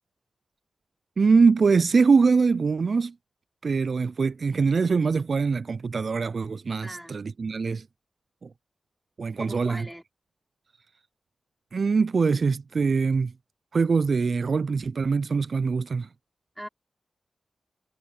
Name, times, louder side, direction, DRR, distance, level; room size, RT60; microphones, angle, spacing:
voice 1, 1.2-3.1 3.6-7.9 8.4-8.5 9.2-9.9 11.7-13.3 13.7-16.1, right 4 dB, 55° right, 0.3 m, -23 dB
voice 2, 6.8-7.2 9.4-10.0 16.6-16.7, equal, 5° right, 4.9 m, -39 dB
wide cardioid pair, 90°, 0 cm